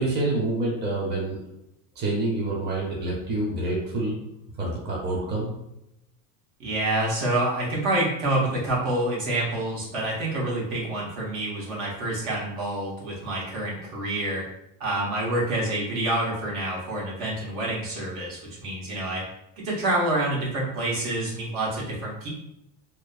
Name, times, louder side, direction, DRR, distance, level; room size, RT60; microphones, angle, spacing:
voice 1, 0.0-1.4 2.0-4.2 4.6-5.5, right 2 dB, 25° right, -3 dB, 0.7 m, -27 dB
voice 2, 6.6-14.4 14.8-19.2 19.6-22.3, right 1 dB, 75° right, -5 dB, 1.3 m, -27 dB
3.0 x 2.0 x 2.4 m, 0.85 s
supercardioid pair, 115°, 40 cm